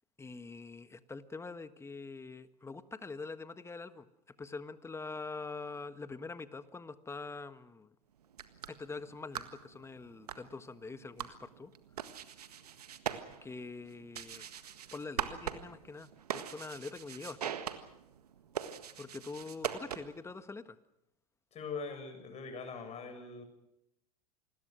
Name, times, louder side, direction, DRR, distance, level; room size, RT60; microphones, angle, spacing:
voice 1, 0.2-4.1 4.4-7.9 8.7-11.7 13.4-14.5 14.9-17.6 19.0-20.8, left 4 dB, 15° left, 12 dB, 1.5 m, -44 dB
sound 1, 8.2-20.3, right 9 dB, 80° right, 1.7 m, -43 dB
voice 2, 21.5-23.4, left 4 dB, 35° left, 6 dB, 7.3 m, -42 dB
27.5 x 21.0 x 6.3 m, 0.81 s
hypercardioid pair, 85°, 20 cm